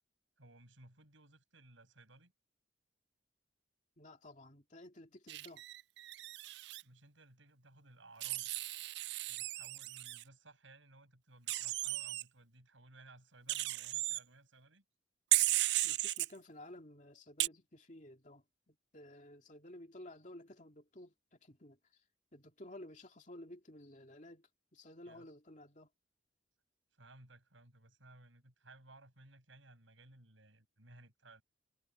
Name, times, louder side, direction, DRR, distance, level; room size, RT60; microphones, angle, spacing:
voice 1, 0.4-2.3 6.8-8.5 9.3-14.8 25.0-25.3 26.9-31.4, right 2 dB, 80° right, 7.5 m, -60 dB
voice 2, 4.0-5.6 15.8-21.8 22.3-25.9, left 1 dB, 40° left, 2.6 m, -54 dB
Wild animals, 5.3-6.8 8.2-10.2 11.5-12.2 13.5-14.2 15.3-16.3 17.4-17.5, right 18 dB, 55° right, 0.3 m, -35 dB
head